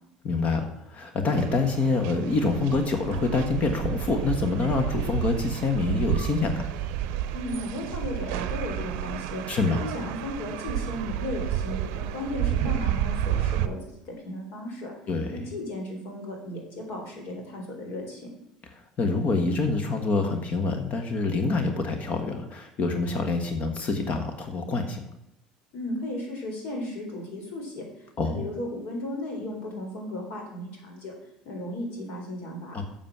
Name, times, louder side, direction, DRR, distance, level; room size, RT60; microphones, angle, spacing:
voice 1, 0.2-6.7 9.5-9.8 15.1-15.4 19.0-25.0 28.2-28.5 32.7-32.8, left 3 dB, 45° left, 6 dB, 1.4 m, -26 dB
sound 1, 1.3-13.7, right 11 dB, 70° right, 0.6 m, -31 dB
voice 2, 7.3-9.4 9.8-14.9 15.3-18.2 25.7-27.8 28.2-31.1 31.5-32.8, left 1 dB, 60° left, 1 dB, 3.8 m, -35 dB
7.4 x 7.1 x 6.0 m, 0.83 s
hypercardioid pair, 75°, 3 cm